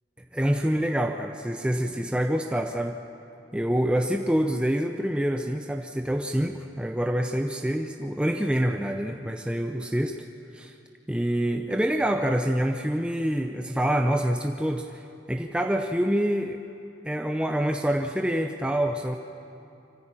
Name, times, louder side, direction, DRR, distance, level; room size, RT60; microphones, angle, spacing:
voice 1, 0.3-3.0 3.5-10.2 10.5-10.7 11.1-16.6 17.0-19.2, equal, 5° right, 4 dB, 0.6 m, -26 dB
25.0 x 14.5 x 8.9 m, 2.7 s
head